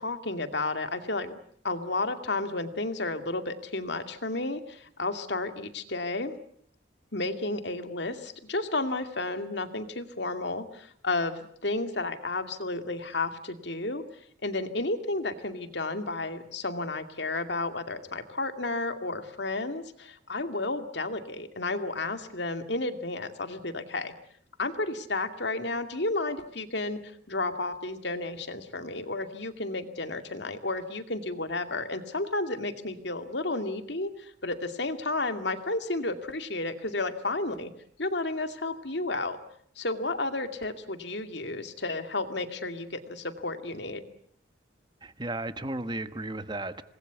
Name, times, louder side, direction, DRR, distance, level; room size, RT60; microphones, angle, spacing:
voice 1, 0.0-1.3 1.6-6.3 7.1-14.0 14.4-24.1 24.6-37.7 38.0-39.4 39.8-44.1, left 2 dB, 60° left, 8 dB, 2.4 m, -32 dB
voice 2, 45.0-46.8, right 2 dB, 25° right, 11 dB, 1.3 m, -34 dB
27.5 x 20.5 x 8.2 m, 0.65 s
head